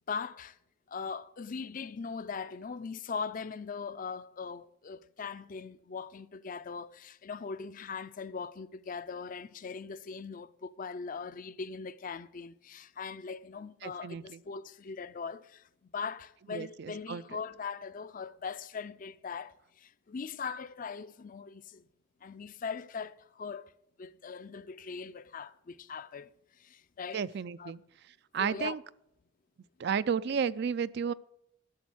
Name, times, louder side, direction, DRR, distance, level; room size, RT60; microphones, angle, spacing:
voice 1, 0.1-0.6 0.9-21.9 22.2-23.7 24.0-26.3 26.6-27.2 27.6-27.7 28.4-28.8, left 5 dB, 45° left, 0.5 m, -40 dB
voice 2, 13.8-14.4 16.5-17.2 27.1-27.8 28.3-28.8 29.8-31.1, right 6 dB, 60° right, 0.4 m, -32 dB
12.5 x 7.1 x 6.2 m
head